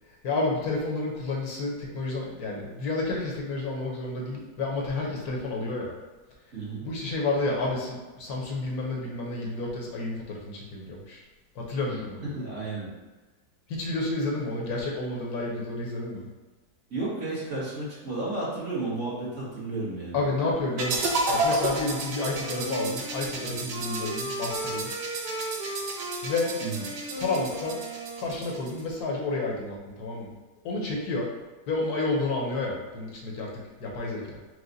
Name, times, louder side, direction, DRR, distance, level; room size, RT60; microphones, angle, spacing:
voice 1, 0.2-5.9 6.8-11.2 11.5-12.2 13.7-16.3 20.1-24.9 26.2-26.6 27.2-27.8 28.2-30.3 30.6-31.3 31.7-33.5 33.8-34.4, left 2 dB, 70° left, -2 dB, 1.3 m, -30 dB
voice 2, 6.5-6.8 12.3-12.9 16.9-20.2 26.6-26.8, right 2 dB, 50° right, -8 dB, 1.6 m, -32 dB
sound 1, 20.8-28.8, right 2 dB, 90° right, 1.3 m, -32 dB
Wind instrument woodwind instrument, 22.2-28.9, right 1 dB, 65° right, 1.9 m, -37 dB
4.8 x 2.1 x 3.9 m, 1.2 s
omnidirectional pair, 1.7 m